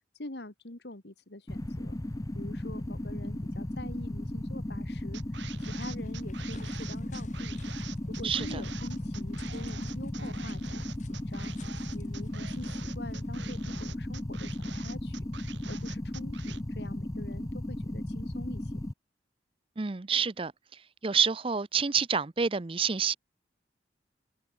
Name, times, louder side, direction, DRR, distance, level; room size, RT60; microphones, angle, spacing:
voice 1, 0.1-2.0 2.3-7.6 8.1-18.9, left 1 dB, 65° left, 2.0 m, -45 dB
sound 1, 1.5-18.9, left 1 dB, 20° left, 0.6 m, -36 dB
sound 2, 5.1-16.6, right 8 dB, 80° right, 1.8 m, -46 dB
sound 3, 5.6-13.5, left 3 dB, 40° left, 3.9 m, -58 dB
voice 2, 8.2-8.6 19.8-20.5 21.0-23.2, right 6 dB, 30° right, 0.6 m, -28 dB
head